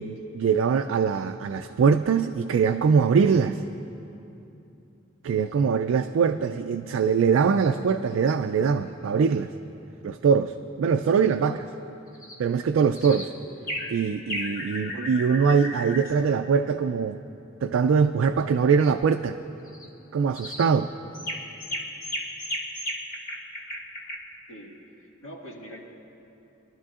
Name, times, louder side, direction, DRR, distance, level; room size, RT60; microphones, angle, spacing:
voice 1, 0.0-3.6 5.2-9.5 10.0-11.7 12.4-13.2 13.9-17.2 17.6-19.4 20.1-20.9, right 6 dB, 75° right, 7 dB, 0.3 m, -22 dB
sound 1, 12.1-12.4 12.9-13.3 13.7-13.9 14.3-16.1 19.7-19.9 20.3-20.7 21.1-24.2, left 1 dB, 45° left, 1.2 m, -34 dB
voice 2, 13.0-13.3 24.5-25.8, equal, 90° left, -2 dB, 1.8 m, -44 dB
22.0 x 12.5 x 2.4 m, 2.8 s
head